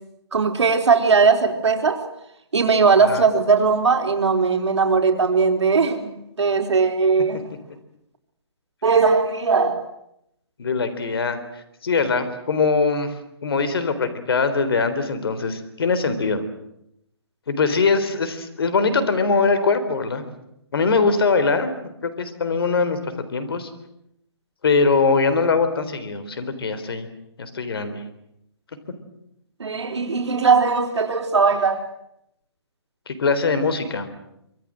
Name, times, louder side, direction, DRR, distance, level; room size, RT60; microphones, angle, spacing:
voice 1, 0.3-2.1 2.5-6.1 6.4-7.4 8.8-9.8 29.6-31.8, right 5 dB, 80° right, 3 dB, 4.0 m, -19 dB
voice 2, 10.6-11.4 11.8-13.1 13.4-16.4 17.5-20.2 20.7-21.7 22.0-23.0 23.3-23.7 24.6-27.1 27.4-28.0 33.1-34.1, left 4 dB, 60° left, 11 dB, 3.9 m, -22 dB
25.0 x 24.0 x 7.7 m, 0.80 s
hypercardioid pair, 170°, 14 cm